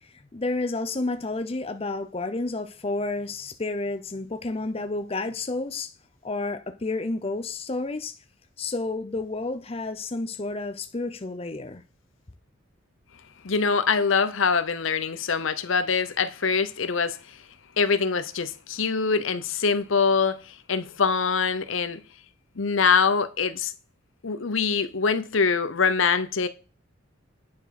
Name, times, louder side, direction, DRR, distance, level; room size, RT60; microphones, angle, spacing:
voice 1, 0.0-5.9 6.2-8.2 8.6-11.8, left 2 dB, 30° left, 0.7 m, -30 dB
voice 2, 13.4-17.4 17.8-22.0 22.6-23.7 24.2-26.5, left 5 dB, 75° left, 0.8 m, -24 dB
9.5 x 4.5 x 5.9 m
head